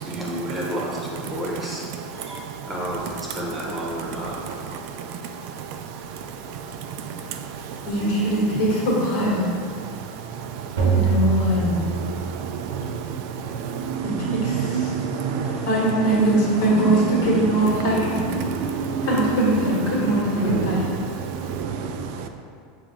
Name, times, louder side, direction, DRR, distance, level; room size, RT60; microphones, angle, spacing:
voice 1, 0.0-1.8 2.2-4.3, equal, 10° right, -4 dB, 0.9 m, -31 dB
voice 2, 7.9-9.4 10.9-12.0 14.0-14.9 15.5-18.0 19.0-20.9, right 1 dB, 65° left, -5 dB, 1.3 m, -22 dB
sound 1, 10.8-12.7, right 6 dB, 90° right, 1.0 m, -24 dB
voice 3, 14.5-15.5 18.5-19.1 21.6-21.7, right 6 dB, 60° right, 6 dB, 0.3 m, -26 dB
5.7 x 2.3 x 3.7 m, 2.3 s
supercardioid pair, 135°, 0 cm